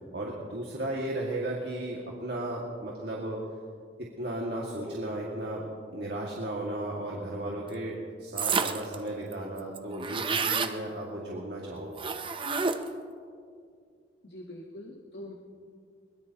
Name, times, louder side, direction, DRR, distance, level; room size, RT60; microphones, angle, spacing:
voice 1, 0.1-3.4 4.0-12.0, right 1 dB, 65° right, -3 dB, 2.1 m, -35 dB
sound 1, 8.4-8.9 9.3-9.4 9.6-10.8 12.0-13.0, right 5 dB, 30° right, 0.7 m, -29 dB
voice 2, 14.2-15.3, left 1 dB, 75° left, -1 dB, 1.5 m, -43 dB
22.0 x 21.5 x 3.0 m, 2.2 s
head